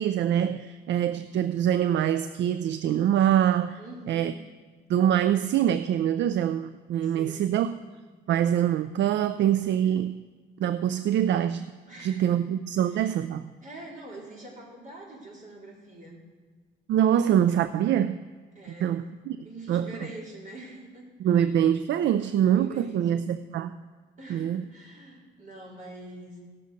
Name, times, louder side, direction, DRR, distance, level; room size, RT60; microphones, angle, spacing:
voice 1, 0.0-3.8 4.1-4.3 4.9-7.7 8.3-10.2 10.6-11.7 12.0-13.5 16.9-18.3 18.8-19.4 19.7-19.9 21.2-23.8 24.3-24.6, right 10 dB, 65° right, 13 dB, 0.4 m, -24 dB
voice 2, 3.8-4.3 7.0-7.8 11.9-12.4 12.8-13.1 13.6-16.2 18.5-19.1 19.4-21.5 22.3-23.3 24.2-26.4, right 1 dB, 40° right, -4 dB, 4.3 m, -45 dB
17.5 x 6.8 x 5.2 m, 1.4 s
cardioid pair, 90°, 20 cm